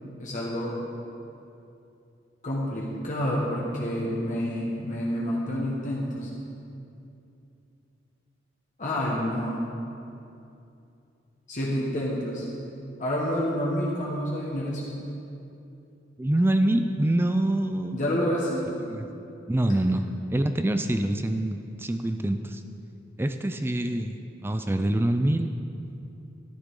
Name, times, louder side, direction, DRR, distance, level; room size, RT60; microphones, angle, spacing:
voice 1, 0.2-0.8 2.4-6.3 8.8-9.6 11.5-12.4 13.0-14.9 17.9-18.7, equal, 45° left, -5 dB, 1.5 m, -28 dB
voice 2, 16.2-18.0 18.9-19.1 19.5-20.0 20.3-22.6 23.2-24.2 24.4-25.5, right 1 dB, 10° right, 7 dB, 0.4 m, -25 dB
13.5 x 12.0 x 3.8 m, 2.7 s
head